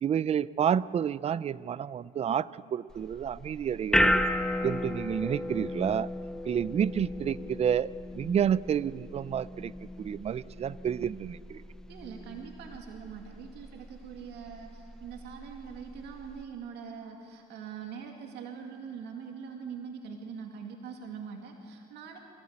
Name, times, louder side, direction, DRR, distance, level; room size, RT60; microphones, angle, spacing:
voice 1, 0.0-4.2 4.6-6.1 6.5-9.7 10.0-11.6, right 8 dB, 40° right, 19 dB, 0.5 m, -30 dB
sound 1, 2.9-16.4, left 1 dB, 5° left, 0.8 m, -34 dB
voice 2, 11.9-22.2, right 6 dB, 80° right, 2 dB, 2.4 m, -43 dB
25.0 x 17.0 x 8.8 m, 2.5 s
cardioid pair, 110°, 17 cm